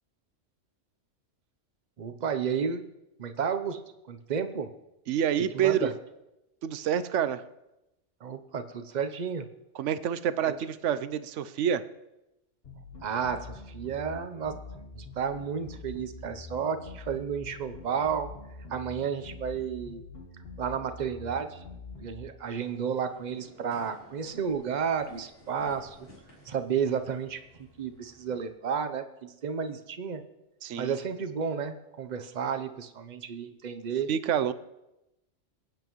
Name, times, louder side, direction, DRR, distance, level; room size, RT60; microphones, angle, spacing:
voice 1, 2.0-2.8 3.2-3.8 4.1-4.7 5.5-5.9 8.2-9.5 10.4-10.6 13.0-14.5 14.9-18.3 18.7-20.0 20.6-21.6 22.0-26.1 26.4-30.2 30.8-34.1, right 7 dB, 40° right, 9 dB, 0.8 m, -32 dB
voice 2, 5.1-5.9 6.6-7.4 9.8-11.8 30.6-31.0 34.1-34.5, right 9 dB, 85° right, 14 dB, 1.0 m, -27 dB
sound 1, 12.6-22.3, left 3 dB, 55° left, 1.4 m, -45 dB
sound 2, 22.5-28.5, left 1 dB, 70° left, 4.2 m, -55 dB
21.5 x 8.9 x 3.1 m, 0.92 s
omnidirectional pair, 1.2 m